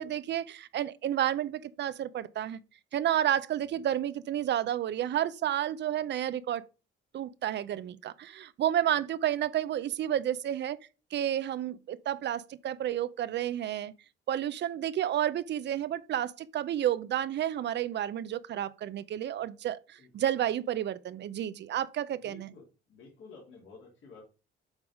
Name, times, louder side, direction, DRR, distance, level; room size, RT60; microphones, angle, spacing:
voice 1, 0.0-2.6 2.9-6.6 7.1-10.8 11.1-13.9 14.3-22.5, right 11 dB, 60° right, 0.6 m, -31 dB
voice 2, 22.2-24.2, left 4 dB, 75° left, 3.0 m, -52 dB
8.0 x 3.5 x 5.3 m
cardioid pair, 90°, 20 cm